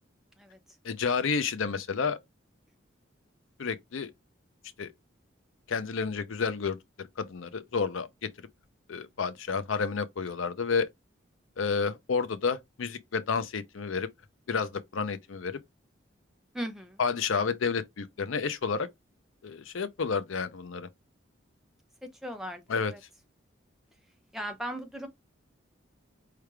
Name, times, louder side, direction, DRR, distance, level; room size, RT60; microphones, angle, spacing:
voice 1, 0.8-2.2 3.6-4.1 4.8-4.9 5.7-8.1 8.9-10.9 11.6-14.1 14.5-15.6 17.0-18.9 19.4-20.9 22.7-22.9, left 5 dB, 85° left, 0.6 m, -30 dB
voice 2, 16.5-17.0 22.0-23.0 24.3-25.1, equal, ahead, 0.7 m, -38 dB
4.7 x 3.3 x 3.3 m
head